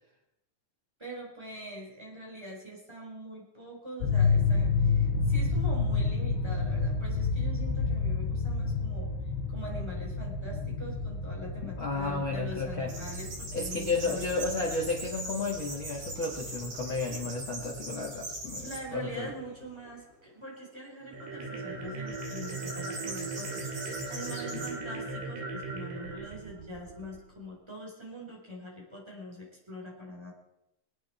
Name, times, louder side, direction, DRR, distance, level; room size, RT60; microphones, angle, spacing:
voice 1, 1.0-9.1 9.5-14.6 18.6-30.3, equal, 5° right, -2 dB, 3.5 m, -43 dB
sound 1, 4.0-18.9, left 4 dB, 65° left, 3.8 m, -30 dB
voice 2, 11.6-12.9 13.5-18.7 18.9-19.3 24.5-25.1, left 3 dB, 85° left, -1 dB, 1.1 m, -33 dB
sound 2, 12.9-18.8 19.4-19.9 22.1-24.7, right 1 dB, 40° right, 6.4 m, -41 dB
sound 3, 21.0-27.3, right 3 dB, 75° right, 5.2 m, -38 dB
25.0 x 9.3 x 4.4 m, 0.84 s
omnidirectional pair, 5.8 m